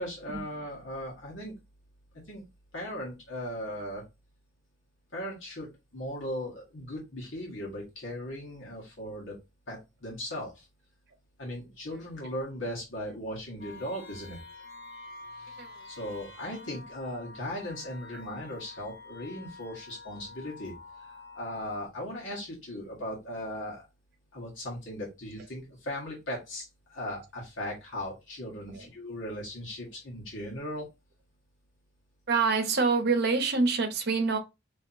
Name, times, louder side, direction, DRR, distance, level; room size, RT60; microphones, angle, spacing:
voice 1, 0.0-1.5 2.3-2.4 2.7-4.0 5.1-9.3 9.7-10.7 11.4-14.4 15.3-20.7 21.1-23.8 24.3-30.8, left 1 dB, 70° left, 1.6 m, -38 dB
sound 1, 13.6-21.9, left 3 dB, 50° left, 1.2 m, -48 dB
voice 2, 32.3-34.4, right 4 dB, 55° right, 0.9 m, -26 dB
4.2 x 3.2 x 2.9 m
head